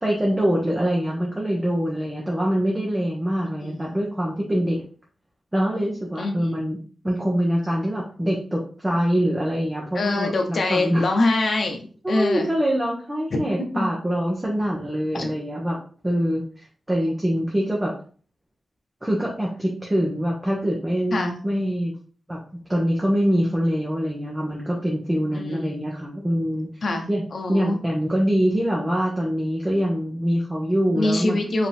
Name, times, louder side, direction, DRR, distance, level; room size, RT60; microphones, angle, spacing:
voice 1, 0.0-4.8 5.5-6.8 7.0-11.0 12.0-15.8 16.0-17.9 19.0-21.9 22.3-22.4 22.7-26.7 27.1-31.4, equal, 10° right, -3 dB, 1.0 m, -24 dB
voice 2, 3.6-4.0 6.2-6.6 9.9-11.8 12.1-12.5 13.3-13.4 13.7-13.9 15.1-15.3 21.1-21.4 25.3-25.8 26.8-27.8 30.9-31.7, left 2 dB, 55° left, 3 dB, 0.9 m, -24 dB
5.0 x 2.9 x 3.5 m, 0.40 s
wide cardioid pair, 130°, 0 cm